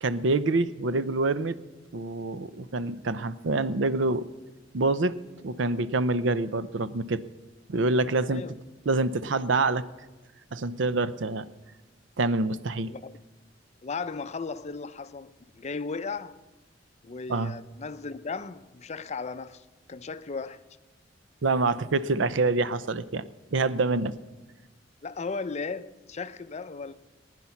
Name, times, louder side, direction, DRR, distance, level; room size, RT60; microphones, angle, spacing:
voice 1, 0.0-1.6 1.9-4.3 4.7-7.2 7.7-8.4 8.9-9.8 10.5-11.4 12.2-12.9 17.3-17.5 21.4-23.2 23.5-24.1, right 3 dB, 75° right, 0.6 m, -26 dB
voice 2, 12.9-13.2 13.8-16.4 17.0-20.6 25.0-26.9, left 4 dB, 35° left, 0.5 m, -36 dB
19.5 x 9.9 x 5.8 m
head